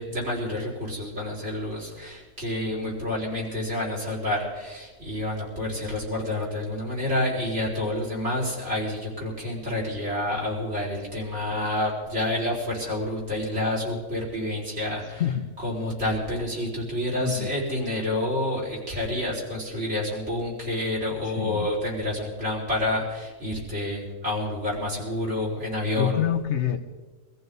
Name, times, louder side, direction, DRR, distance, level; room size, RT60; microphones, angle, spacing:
voice 1, 0.0-26.3, left 1 dB, 60° right, -4 dB, 5.5 m, -29 dB
voice 2, 15.2-15.5 17.2-17.5 21.2-21.7 25.9-26.8, left 9 dB, 65° left, 8 dB, 1.2 m, -26 dB
24.0 x 15.0 x 4.1 m, 1.3 s
omnidirectional pair, 1.3 m